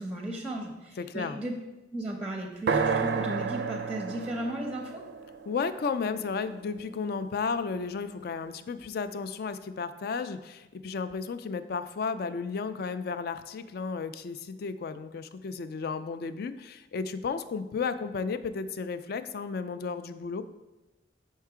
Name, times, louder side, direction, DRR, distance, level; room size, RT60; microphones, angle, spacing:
voice 1, 0.0-1.6 1.9-5.0, right 1 dB, 5° right, 2 dB, 0.6 m, -35 dB
voice 2, 1.0-1.4 5.5-20.4, left 5 dB, 55° left, 12 dB, 0.3 m, -33 dB
sound 1, 2.7-6.6, right 5 dB, 60° right, 0.4 m, -31 dB
5.5 x 4.6 x 4.7 m, 1.1 s
head